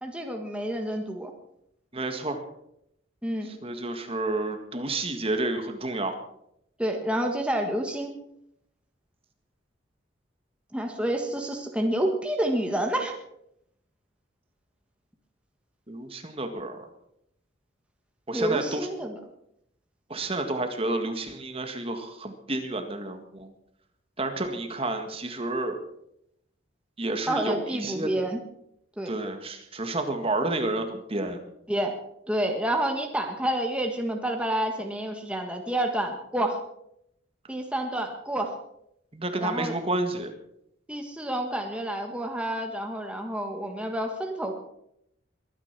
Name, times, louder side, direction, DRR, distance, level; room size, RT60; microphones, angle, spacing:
voice 1, 0.0-1.3 3.2-3.5 6.8-8.1 10.7-13.2 18.3-19.2 27.3-28.4 29.0-29.1 31.7-31.9 32.3-36.6 37.5-38.5 39.4-39.7 40.9-44.5, right 1 dB, 5° right, 2 dB, 1.6 m, -29 dB
voice 2, 1.9-2.4 3.4-6.1 15.9-16.9 18.3-18.9 20.1-23.5 24.2-25.8 27.0-28.1 29.1-31.4 39.1-40.3, right 2 dB, 30° right, 6 dB, 1.8 m, -30 dB
22.5 x 10.0 x 6.1 m, 0.76 s
head